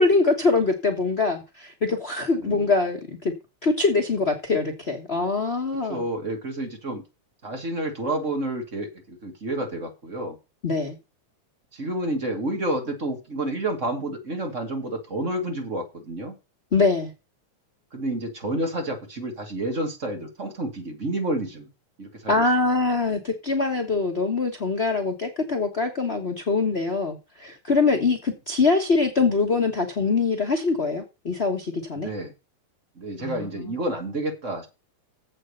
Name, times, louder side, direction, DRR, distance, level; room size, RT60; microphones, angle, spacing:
voice 1, 0.0-3.3 3.6-6.0 10.6-10.9 16.7-17.1 22.3-32.1 33.2-33.5, left 3 dB, 85° left, 0.5 m, -23 dB
voice 2, 2.4-2.7 5.9-7.0 7.4-10.4 11.7-16.4 17.9-21.7 22.0-22.4 31.9-32.3 33.0-34.7, right 1 dB, 25° right, 2.2 m, -29 dB
7.8 x 6.5 x 6.5 m
omnidirectional pair, 3.4 m